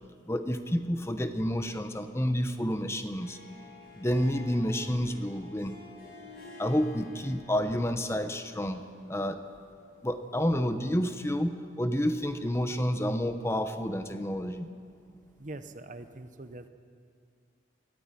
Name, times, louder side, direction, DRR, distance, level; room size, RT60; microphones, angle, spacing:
voice 1, 0.3-3.4 3.9-5.7 6.6-9.4 10.0-14.7, equal, 15° left, 8 dB, 0.8 m, -29 dB
Harp, 3.0-11.3, left 2 dB, 50° left, 6.4 m, -52 dB
voice 2, 15.4-16.7, right 2 dB, 45° right, 10 dB, 0.9 m, -43 dB
22.5 x 14.5 x 9.0 m, 2.2 s
head